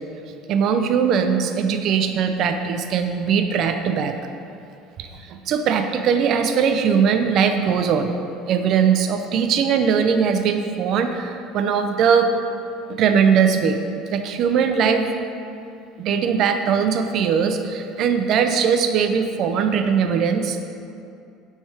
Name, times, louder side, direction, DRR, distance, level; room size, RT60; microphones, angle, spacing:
voice 1, 0.5-4.1 5.0-8.1 8.5-12.3 13.0-13.8 14.1-15.1 16.0-20.7, right 7 dB, 45° right, 7 dB, 0.4 m, -20 dB
7.3 x 3.3 x 4.7 m, 2.5 s
cardioid pair, 155°, 0 cm